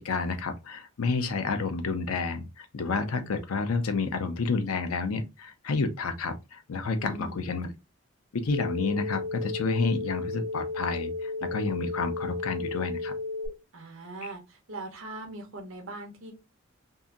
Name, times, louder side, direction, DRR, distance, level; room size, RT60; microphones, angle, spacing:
voice 1, 0.0-7.7 8.3-13.1, left 4 dB, 90° left, 0.5 m, -30 dB
voice 2, 7.0-7.4 13.7-16.3, right 2 dB, 65° right, 0.9 m, -40 dB
sound 1, 8.5-13.5, left 3 dB, 20° right, 1.7 m, -33 dB
2.8 x 2.5 x 2.4 m
head